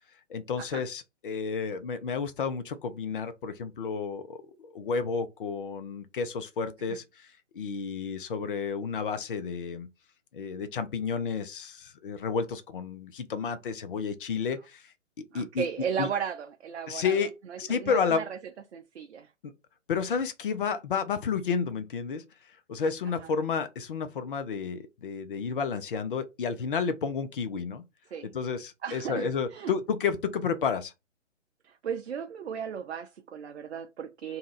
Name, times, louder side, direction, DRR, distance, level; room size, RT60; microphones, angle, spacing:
voice 1, 0.3-7.3 7.5-9.9 10.3-14.9 15.3-15.7 16.0-16.1 16.9-17.3 17.6-18.2 19.4-19.5 19.9-22.2 22.7-27.8 28.3-30.9, left 5 dB, 45° left, 0.5 m, -31 dB
voice 2, 15.3-17.2 17.5-18.4 18.7-19.3 28.1-28.3 28.8-29.7 31.6-34.4, right 7 dB, 65° right, 0.5 m, -35 dB
2.7 x 2.3 x 3.9 m
figure-of-eight pair, 135°, 37 cm